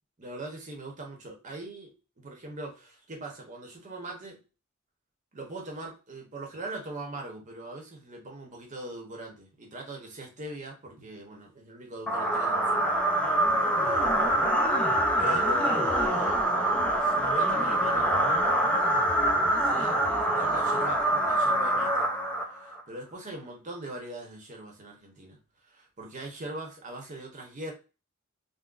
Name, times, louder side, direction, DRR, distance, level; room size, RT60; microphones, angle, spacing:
voice 1, 0.2-4.4 5.3-12.9 13.3-13.4 13.8-14.7 15.2-16.5 17.0-18.3 19.5-22.1 22.5-25.4 25.6-27.7, right 1 dB, 40° right, 0.8 m, -41 dB
sound 1, 12.1-22.8, right 1 dB, 5° left, 0.4 m, -25 dB
3.8 x 2.0 x 2.4 m
head